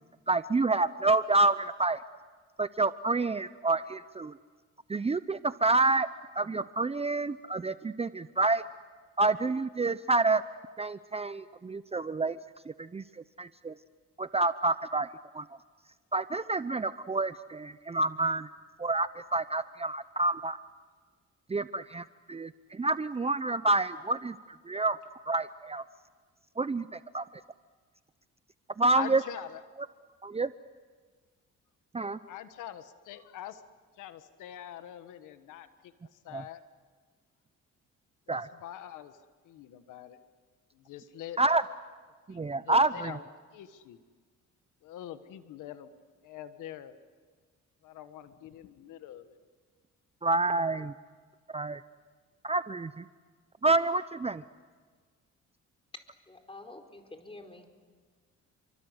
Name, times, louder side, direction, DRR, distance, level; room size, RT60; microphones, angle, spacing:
voice 1, 0.3-2.0 2.6-4.3 4.9-6.1 6.3-8.6 9.2-10.4 10.8-12.4 12.8-13.0 13.4-13.7 14.2-15.1 15.3-15.4 16.1-18.5 18.8-20.6 21.5-24.4 24.7-25.0 25.3-25.8 26.6-27.3 28.8-29.2 30.2-30.5 31.9-32.2 36.3-36.4 38.3-38.5 41.4-41.6 42.3-43.2 50.2-50.9 51.5-51.8 52.4-53.1 53.6-54.4, right 2 dB, 20° right, 13 dB, 0.7 m, -28 dB
voice 2, 28.9-29.6 32.0-33.6 34.0-36.6 38.3-39.1 39.4-40.2 40.7-41.4 42.3-43.2 43.5-44.0 44.8-45.9 46.2-46.9 47.8-49.3, left 12 dB, 90° left, 10 dB, 1.5 m, -44 dB
voice 3, 56.3-57.7, left 2 dB, 20° left, 5 dB, 4.6 m, -48 dB
29.5 x 24.0 x 8.1 m, 1.5 s
cardioid pair, 90°, 30 cm